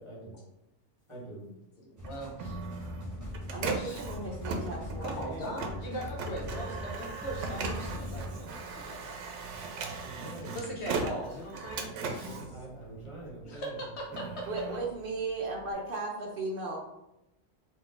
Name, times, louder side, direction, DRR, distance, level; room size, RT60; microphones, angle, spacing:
voice 1, 0.1-0.4 1.1-1.5 10.0-10.6 12.2-13.7 14.1-14.3, right 2 dB, 25° left, -4 dB, 1.3 m, -45 dB
voice 2, 1.8-2.6 3.6-4.0 5.0-9.2 10.5-12.4 13.4-14.4, equal, 65° left, -1 dB, 1.2 m, -40 dB
sound 1, 2.0-8.4, left 1 dB, 15° right, 1.0 m, -41 dB
Printer, 2.0-13.4 13.9-15.7, right 4 dB, 85° right, 1.0 m, -38 dB
voice 3, 4.0-5.5 10.2-10.5 12.2-12.4 14.5-16.8, right 3 dB, 55° right, -1 dB, 0.8 m, -37 dB
3.8 x 2.7 x 3.7 m, 0.87 s
omnidirectional pair, 1.2 m